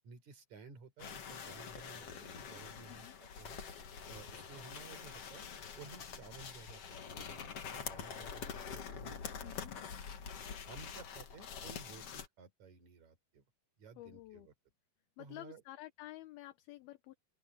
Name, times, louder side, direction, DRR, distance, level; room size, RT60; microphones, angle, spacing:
voice 1, 0.0-3.6 4.1-5.4 5.8-9.6 10.3-13.4 13.8-14.5 15.2-15.6, right 5 dB, 45° right, 5.0 m, -55 dB
sound 1, 1.0-12.3, left 6 dB, 50° left, 2.1 m, -46 dB
sound 2, 3.4-11.0, left 2 dB, 25° left, 3.1 m, -66 dB
voice 2, 9.4-9.7 14.0-14.5 15.2-17.2, left 16 dB, 75° left, 2.6 m, -50 dB
open air
omnidirectional pair, 4.9 m